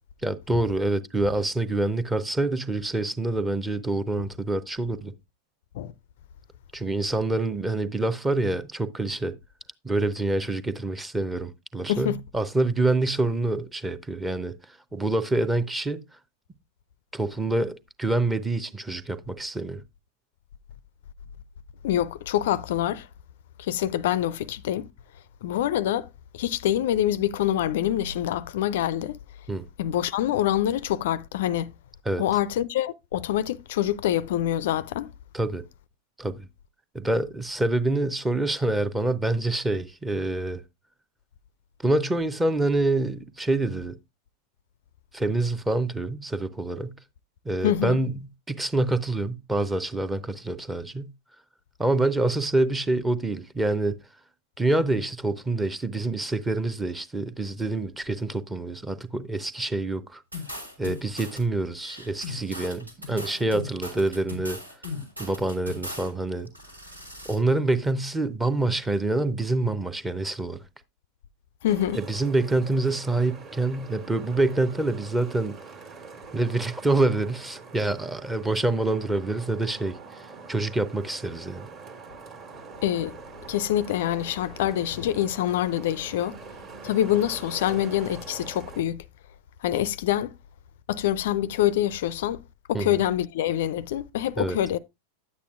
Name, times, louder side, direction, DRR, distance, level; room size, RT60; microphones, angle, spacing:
voice 1, 0.2-5.1 6.7-9.3 9.8-16.0 17.1-19.8 29.5-29.7 32.1-32.2 35.3-35.6 36.2-36.5 36.9-40.6 41.8-44.0 45.1-46.9 47.4-48.1 48.5-51.1 51.8-54.0 54.6-60.2 60.8-64.6 65.2-66.5 67.2-70.6 71.9-75.6 76.3-81.7 92.7-93.0 94.4-94.6, right 2 dB, 10° right, 0.6 m, -26 dB
voice 2, 11.9-12.2 21.8-23.1 23.6-24.9 25.4-26.1 26.3-29.2 29.8-31.7 32.2-35.1 47.6-48.0 71.6-72.0 82.8-83.2 83.5-86.4 86.8-89.0 89.6-90.3 90.9-92.4 92.7-94.8, left 12 dB, 55° left, 0.3 m, -25 dB
sound 1, 60.3-61.4 61.8-66.1 66.5-67.4, left 2 dB, 85° right, 2.7 m, -38 dB
Traffic noise roadway noise, 71.6-88.8, right 4 dB, 30° right, 1.5 m, -44 dB
10.0 x 8.3 x 2.4 m
figure-of-eight pair, 90°, 0 cm